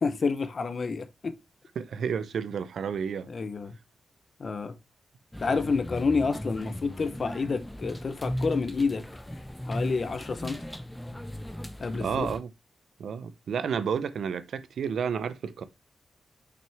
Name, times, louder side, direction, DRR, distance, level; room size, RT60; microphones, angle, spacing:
voice 1, 0.0-1.3 3.3-3.8 4.4-4.8 5.4-9.0 9.7-10.6 11.8-12.3, left 4 dB, 40° left, 0.8 m, -29 dB
voice 2, 1.8-3.3 12.0-12.5 13.0-15.6, right 7 dB, 75° right, 0.7 m, -31 dB
sound 1, 5.3-12.4, equal, 5° left, 0.8 m, -37 dB
6.1 x 5.9 x 3.5 m
wide cardioid pair, 165°, 0 cm